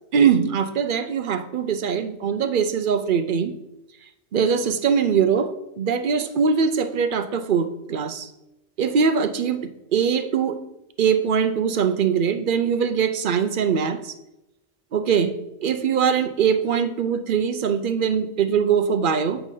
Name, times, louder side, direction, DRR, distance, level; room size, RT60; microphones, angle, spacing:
voice 1, 0.1-3.5 4.3-8.3 8.8-10.6 11.0-14.1 14.9-19.4, right 6 dB, 55° right, 11 dB, 0.7 m, -22 dB
8.2 x 5.2 x 5.5 m, 0.93 s
omnidirectional pair, 1.1 m